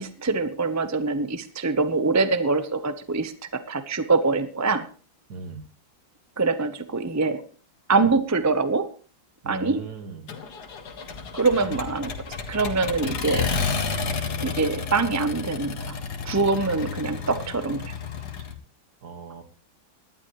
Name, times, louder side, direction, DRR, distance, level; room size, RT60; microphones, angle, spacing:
voice 1, 0.0-4.9 6.4-7.4 7.9-8.9 9.5-9.8 11.3-13.5 14.4-16.0 16.2-17.9, right 3 dB, 15° right, 11 dB, 0.5 m, -24 dB
voice 2, 5.3-5.7 9.4-10.3 11.6-11.8 19.0-19.4, right 4 dB, 55° right, 9 dB, 2.0 m, -38 dB
Accelerating revving vroom, 10.3-18.5, left 5 dB, 60° left, 2.1 m, -31 dB
19.0 x 12.0 x 3.2 m, 0.38 s
omnidirectional pair, 2.0 m